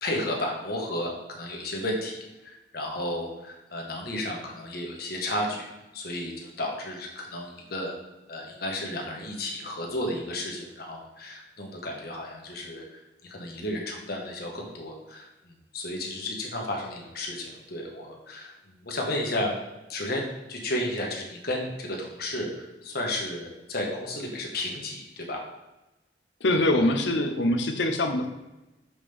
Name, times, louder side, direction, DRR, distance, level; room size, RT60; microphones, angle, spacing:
voice 1, 0.0-5.6 5.9-7.9 8.3-19.6 19.9-25.4, left 1 dB, 60° left, 0 dB, 1.5 m, -33 dB
voice 2, 26.4-28.3, left 1 dB, 80° left, 6 dB, 0.8 m, -23 dB
7.3 x 5.2 x 3.5 m, 1.0 s
head